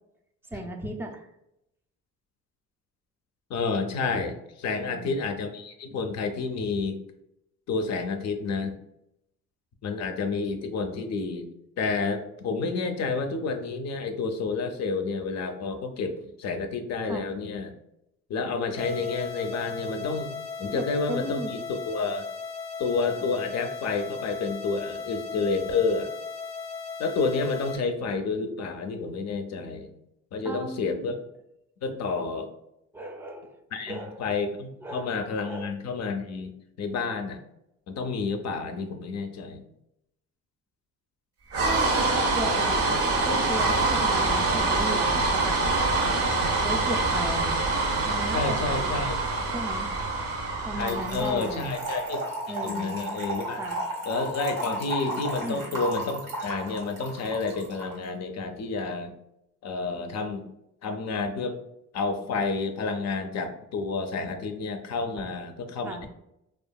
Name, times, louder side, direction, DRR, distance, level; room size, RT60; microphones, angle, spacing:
voice 1, 0.5-1.3 4.8-5.2 17.0-17.3 20.7-21.6 30.4-31.1 32.9-33.6 33.9-34.2 34.8-35.2 35.4-35.7 41.7-42.8 43.3-45.6 46.6-47.6 47.9-48.9 49.5-50.1 50.6-51.7 52.5-52.9 53.5-53.8 55.4-55.7 65.2-65.3 65.8-66.1, right 1 dB, 10° right, 4 dB, 0.3 m, -36 dB
voice 2, 3.5-7.0 7.7-8.7 9.8-11.5 11.8-17.7 18.3-21.6 21.9-22.2 22.8-26.1 27.0-29.9 30.3-31.2 31.8-32.5 33.7-36.5 36.8-37.4 37.9-39.7 48.3-49.2 50.7-52.2 52.6-53.6 54.1-59.1 59.6-60.4 60.8-61.6 61.9-66.1, left 4 dB, 60° left, 7 dB, 0.5 m, -30 dB
sound 1, 18.8-27.8, left 5 dB, 20° left, 0.7 m, -37 dB
sound 2, 41.5-51.8, right 3 dB, 50° right, 0.6 m, -25 dB
Trickle dribble / Fill (with liquid), 50.9-58.0, right 1 dB, 90° right, 1.0 m, -34 dB
2.7 x 2.4 x 2.2 m, 0.82 s
cardioid pair, 90°, 30 cm